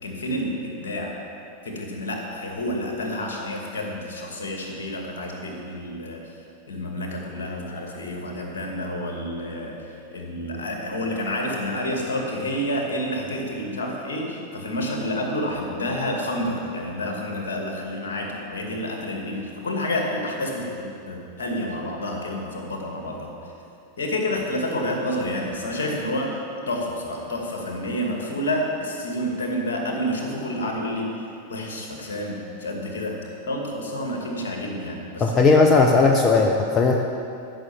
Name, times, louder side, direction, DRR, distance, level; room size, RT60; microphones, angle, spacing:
voice 1, 0.0-1.1 1.6-6.2 6.7-23.3 24.0-26.4 26.7-31.1 31.5-33.2 33.5-35.4, left 1 dB, 60° left, 0 dB, 2.2 m, -29 dB
voice 2, 35.2-36.9, left 3 dB, 25° left, 2 dB, 0.8 m, -17 dB
14.0 x 6.3 x 7.2 m, 2.6 s
figure-of-eight pair, 90°, 0 cm